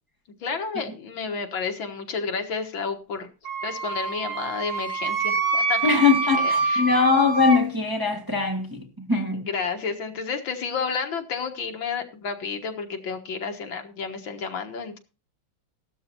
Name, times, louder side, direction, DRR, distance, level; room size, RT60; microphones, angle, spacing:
voice 1, 0.4-3.3 3.6-5.8 6.4-7.0 9.5-15.0, left 5 dB, 70° left, 2.1 m, -31 dB
Wind instrument woodwind instrument, 3.4-7.6, right 4 dB, 75° right, 3.3 m, -26 dB
voice 2, 5.8-9.5, left 4 dB, 10° right, 1.4 m, -22 dB
15.0 x 12.5 x 2.8 m
omnidirectional pair, 2.3 m